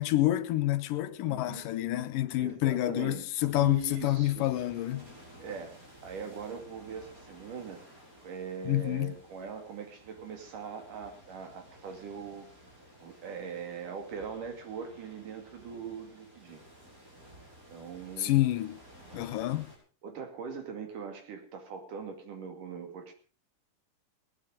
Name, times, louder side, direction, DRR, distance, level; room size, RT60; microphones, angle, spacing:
voice 1, 0.0-5.1 8.7-9.2 18.2-18.8 19.1-19.7, left 15 dB, 85° left, 2.6 m, -28 dB
voice 2, 1.2-1.7 2.4-3.3 3.5-4.5 5.4-5.8 6.0-7.8 8.2-12.5 13.0-16.6 17.7-18.4 19.1-19.3 20.0-23.1, right 6 dB, 70° right, 4.1 m, -41 dB
sound 1, 3.5-19.8, right 1 dB, 25° right, 6.1 m, -55 dB
18.5 x 11.0 x 5.1 m
omnidirectional pair, 3.8 m